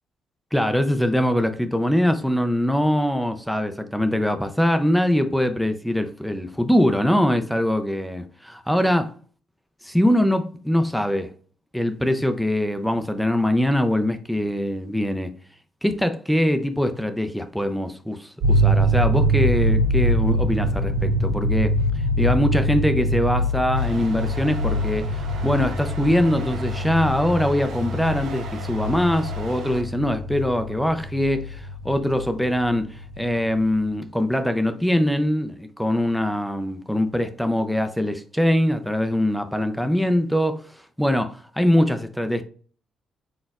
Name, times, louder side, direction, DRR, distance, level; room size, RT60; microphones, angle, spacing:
voice 1, 0.5-9.1 9.8-11.3 11.7-15.3 15.8-21.7 22.2-40.6 41.0-42.4, left 1 dB, ahead, 0.4 m, -22 dB
sound 1, 18.4-33.3, equal, 90° right, 2.0 m, -24 dB
sound 2, 23.7-29.8, right 5 dB, 75° right, 0.8 m, -38 dB
4.2 x 3.9 x 2.3 m
cardioid pair, 90°, 0 cm